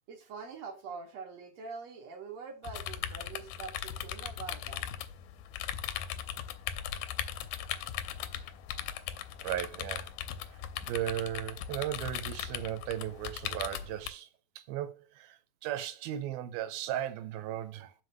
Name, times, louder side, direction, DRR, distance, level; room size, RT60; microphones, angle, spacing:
voice 1, 0.1-4.9, right 5 dB, 55° right, 2.1 m, -44 dB
sound 1, 2.7-14.1, left 10 dB, 80° left, 2.4 m, -39 dB
voice 2, 9.4-10.1 10.5-10.6 10.9-14.3 14.6-17.9, right 12 dB, 80° right, 2.5 m, -36 dB
6.3 x 4.9 x 6.3 m
omnidirectional pair, 4.5 m